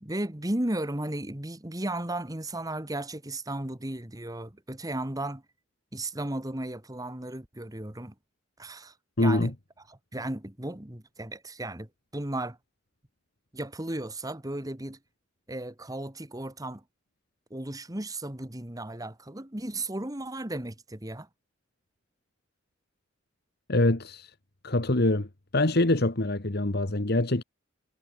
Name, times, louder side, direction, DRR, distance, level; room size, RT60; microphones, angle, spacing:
voice 1, 0.0-5.4 5.9-8.1 8.6-9.5 9.9-12.6 13.5-15.0 15.5-16.8 17.5-21.3, right 1 dB, 20° right, 1.7 m, -35 dB
voice 2, 9.2-9.5 23.7-24.3 24.6-25.3 25.5-27.4, left 2 dB, 55° left, 1.6 m, -24 dB
head